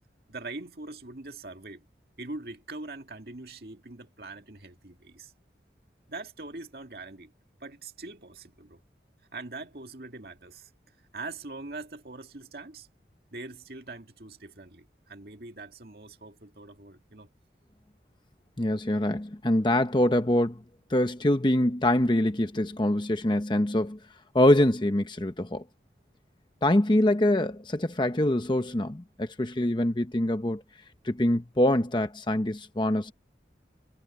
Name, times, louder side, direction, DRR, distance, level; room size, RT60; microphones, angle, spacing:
voice 1, 0.3-1.8 2.2-5.3 6.1-7.3 7.6-8.8 9.3-10.7 11.1-12.9 13.3-17.3, right 3 dB, 60° right, 2.1 m, -42 dB
voice 2, 18.6-20.6 20.9-24.0 24.3-25.6 26.6-30.6 31.0-33.1, left 1 dB, 25° left, 0.9 m, -24 dB
head